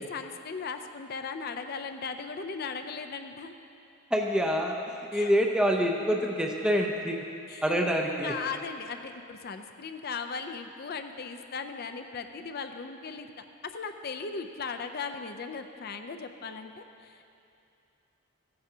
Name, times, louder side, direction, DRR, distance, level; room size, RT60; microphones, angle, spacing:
voice 1, 0.0-3.5 5.1-5.3 7.5-7.7 8.2-13.4 13.7-17.3, left 5 dB, 45° left, 7 dB, 0.5 m, -38 dB
voice 2, 4.1-7.2 7.6-8.3, equal, 5° right, 0 dB, 0.5 m, -26 dB
15.5 x 9.4 x 2.8 m, 2.6 s
head